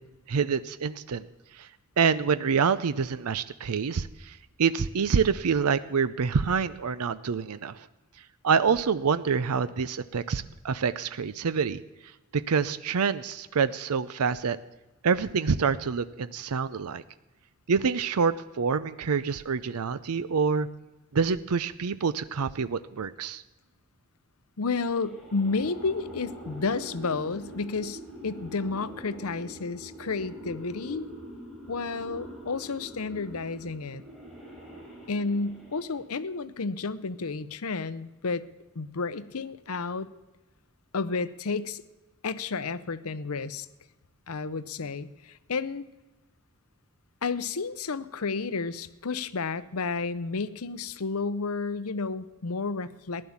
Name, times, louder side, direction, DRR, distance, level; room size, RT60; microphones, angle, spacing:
voice 1, 0.3-1.2 1.5-1.7 2.0-7.9 8.4-11.8 12.3-14.6 15.0-17.0 17.7-20.7 21.1-23.4, right 6 dB, 85° right, 15 dB, 0.5 m, -26 dB
voice 2, 24.6-31.1 31.7-34.0 35.1-38.4 38.7-40.1 40.9-41.8 42.2-43.7 44.3-45.8 47.2-53.3, left 4 dB, 80° left, 15 dB, 0.8 m, -31 dB
sound 1, 24.9-36.1, equal, ahead, 4.0 m, -44 dB
15.5 x 11.0 x 7.2 m, 1.1 s
head